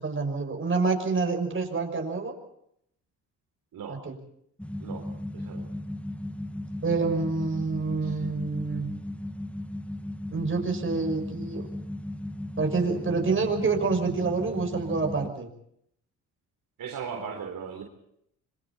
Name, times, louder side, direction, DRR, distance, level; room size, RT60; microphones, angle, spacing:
voice 1, 0.0-2.3 3.9-4.1 6.8-8.9 10.3-11.7 12.6-15.5, right 4 dB, 30° right, 4 dB, 6.1 m, -27 dB
sound 1, 4.6-15.3, left 1 dB, 5° left, 1.3 m, -36 dB
voice 2, 5.3-5.7 8.0-8.2 16.8-17.8, right 6 dB, 60° right, 2 dB, 3.8 m, -37 dB
26.0 x 24.5 x 4.3 m, 0.72 s
supercardioid pair, 60°, 38 cm